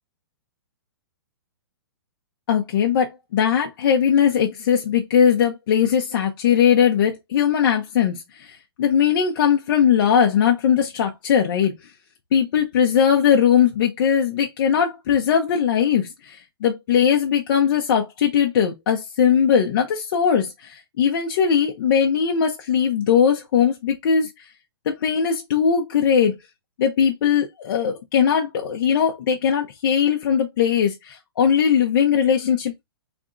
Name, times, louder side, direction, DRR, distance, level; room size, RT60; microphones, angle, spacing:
voice 1, 2.5-11.7 12.3-24.3 24.9-26.4 26.8-32.8, left 8 dB, 60° left, 0.9 m, -20 dB
3.6 x 3.6 x 2.5 m
hypercardioid pair, 135°, 13 cm